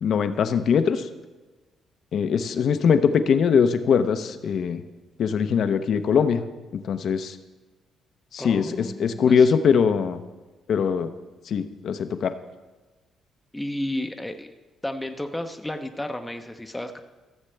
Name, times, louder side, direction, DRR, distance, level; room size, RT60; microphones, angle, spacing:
voice 1, 0.0-1.0 2.1-4.8 5.2-6.4 6.7-7.4 8.3-10.2 10.7-11.1 11.5-12.3, left 6 dB, 65° left, 10 dB, 0.6 m, -21 dB
voice 2, 8.4-9.5 13.5-14.5 14.8-17.0, left 1 dB, 10° left, 5 dB, 0.7 m, -32 dB
15.0 x 7.3 x 3.3 m, 1.2 s
cardioid pair, 90°, 0 cm